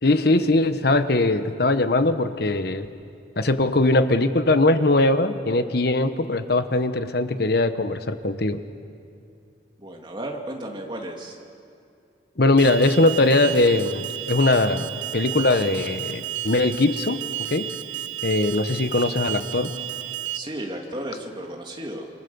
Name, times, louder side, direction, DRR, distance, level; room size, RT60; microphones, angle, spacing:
voice 1, 0.0-2.9 3.4-8.6 12.4-17.2 17.5-17.7 18.2-19.7, left 2 dB, 60° left, 10 dB, 1.1 m, -21 dB
voice 2, 9.8-11.4 20.3-22.1, right 1 dB, 25° right, 1 dB, 2.5 m, -34 dB
Alarm, 12.6-20.4, right 12 dB, 90° right, 0.6 m, -32 dB
28.0 x 23.5 x 7.0 m, 2.5 s
head